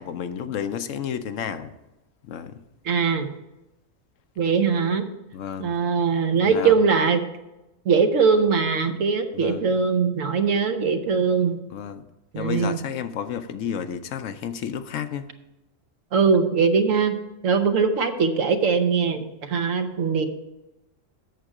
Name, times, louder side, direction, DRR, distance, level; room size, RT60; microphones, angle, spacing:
voice 1, 0.0-1.7 2.3-2.6 5.3-5.7 6.4-6.7 9.3-9.7 11.7-12.0 12.3-15.3, left 8 dB, 75° left, 10 dB, 1.0 m, -31 dB
voice 2, 2.8-3.3 4.4-5.0 5.6-7.2 7.8-11.6 12.3-12.8 16.1-17.2 17.4-20.3, right 5 dB, 80° right, 7 dB, 1.2 m, -21 dB
8.2 x 7.5 x 4.9 m, 0.98 s
omnidirectional pair, 1.3 m